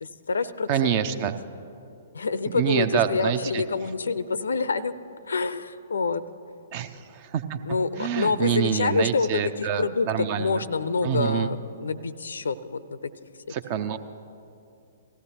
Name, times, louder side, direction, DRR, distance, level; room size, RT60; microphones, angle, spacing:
voice 1, 0.0-1.2 2.1-4.9 5.3-6.2 7.6-13.1, left 4 dB, 65° left, 16 dB, 0.5 m, -27 dB
voice 2, 0.7-1.4 2.5-3.6 6.7-7.6 8.0-10.6 11.0-11.5 13.5-14.0, right 9 dB, 35° right, 12 dB, 0.6 m, -26 dB
18.0 x 14.5 x 2.9 m, 2.6 s
figure-of-eight pair, 115°, 0 cm